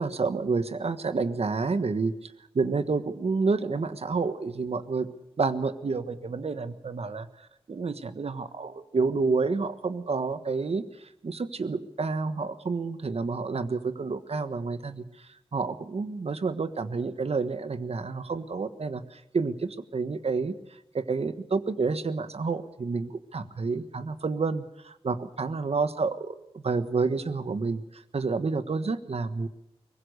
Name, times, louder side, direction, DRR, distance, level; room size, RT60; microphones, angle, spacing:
voice 1, 0.0-5.1 5.4-20.5 20.9-29.5, right 4 dB, 80° right, 11 dB, 1.4 m, -29 dB
23.0 x 20.0 x 6.7 m, 0.84 s
wide cardioid pair, 75°, 10 cm